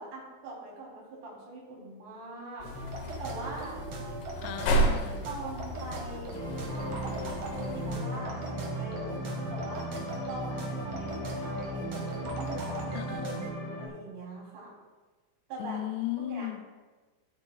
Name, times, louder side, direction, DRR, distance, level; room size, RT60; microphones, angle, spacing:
voice 1, 0.0-2.7 3.2-3.8 5.3-7.1 7.6-9.9 10.3-14.7 15.5-15.8 16.2-16.5, right 2 dB, 85° right, 5.3 m, -42 dB
sound 1, 2.6-8.0, right 1 dB, 70° left, 2.2 m, -33 dB
sound 2, 2.6-13.5, right 2 dB, 55° right, 1.8 m, -40 dB
voice 2, 4.4-5.3 12.9-13.6 15.6-16.7, left 13 dB, 90° left, 2.7 m, -36 dB
sound 3, 6.3-13.9, equal, 45° left, 1.8 m, -37 dB
14.0 x 8.2 x 2.3 m
omnidirectional pair, 4.7 m